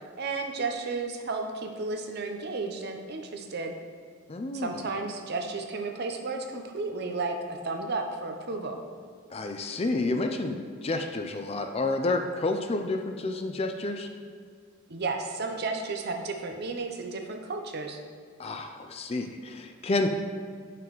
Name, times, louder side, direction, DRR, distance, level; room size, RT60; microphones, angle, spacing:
voice 1, 0.2-3.7 4.5-8.8 14.9-18.0, right 3 dB, 50° right, 4 dB, 0.7 m, -33 dB
voice 2, 4.3-4.8 9.3-14.1 18.4-20.1, left 2 dB, 30° left, 6 dB, 0.4 m, -30 dB
8.8 x 5.9 x 3.1 m, 2.1 s
head